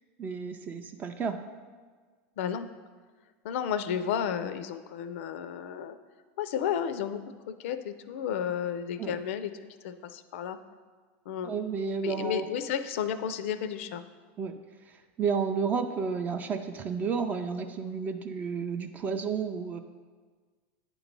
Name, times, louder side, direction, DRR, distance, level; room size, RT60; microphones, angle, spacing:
voice 1, 0.2-1.4 9.0-9.2 11.4-12.5 14.4-14.6 14.9-19.8, right 5 dB, 25° right, 7 dB, 0.3 m, -31 dB
voice 2, 2.4-2.7 3.4-6.0 6.4-7.2 7.5-9.5 9.8-10.6 11.3-11.5 12.0-14.0, left 8 dB, 75° left, 11 dB, 0.4 m, -32 dB
8.8 x 3.0 x 5.2 m, 1.5 s
supercardioid pair, 140°, 7 cm